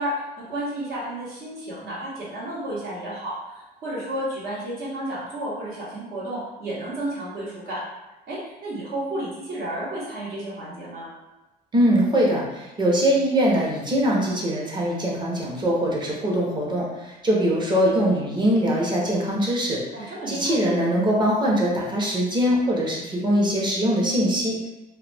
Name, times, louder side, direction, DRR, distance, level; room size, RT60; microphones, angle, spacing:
voice 1, 0.0-7.8 8.3-11.1 19.9-20.6, right 1 dB, 65° right, -7 dB, 1.1 m, -32 dB
voice 2, 11.7-24.7, equal, 25° right, -3 dB, 0.8 m, -22 dB
2.3 x 2.0 x 3.3 m, 1.0 s
cardioid pair, 110°, 17 cm